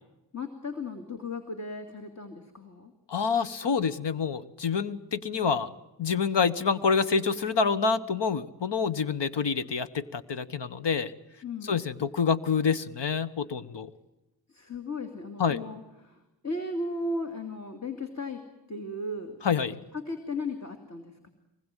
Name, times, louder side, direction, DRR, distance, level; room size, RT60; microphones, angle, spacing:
voice 1, 0.3-2.9 11.4-11.8 14.5-18.4 18.7-19.4 20.0-21.3, left 2 dB, 40° left, 5 dB, 2.7 m, -36 dB
voice 2, 3.1-5.7 6.0-11.1 11.6-13.9 15.4-15.6 19.4-19.7, left 5 dB, 75° left, 12 dB, 1.3 m, -27 dB
24.5 x 20.5 x 9.1 m, 0.98 s
wide cardioid pair, 75°, 43 cm